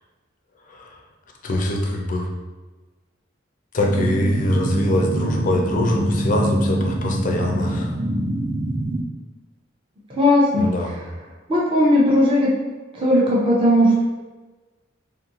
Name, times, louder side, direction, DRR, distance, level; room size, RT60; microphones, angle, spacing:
voice 1, 0.7-1.0 1.4-2.3 3.7-7.9 10.6-11.0, left 1 dB, 45° left, 1 dB, 0.5 m, -23 dB
sound 1, 3.8-9.0, right 1 dB, 70° right, 0.7 m, -25 dB
voice 2, 10.2-10.7 11.5-12.6 13.0-14.0, left 1 dB, 30° right, -6 dB, 0.6 m, -17 dB
2.6 x 2.5 x 2.9 m, 1.2 s
head